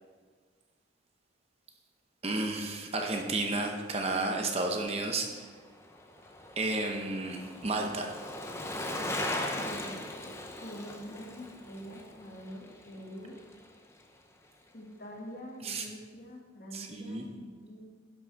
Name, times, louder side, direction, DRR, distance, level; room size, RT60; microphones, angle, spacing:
voice 1, 2.2-5.4 6.6-8.1 15.6-15.9 16.7-17.3, right 2 dB, 30° right, 3 dB, 0.8 m, -32 dB
Bicycle, 5.3-13.7 14.0-14.1, left 1 dB, 15° left, 0.7 m, -39 dB
voice 2, 9.6-10.0 10.6-13.3 14.7-17.8, equal, 50° left, -1 dB, 1.6 m, -45 dB
11.0 x 6.1 x 4.4 m, 1.5 s
head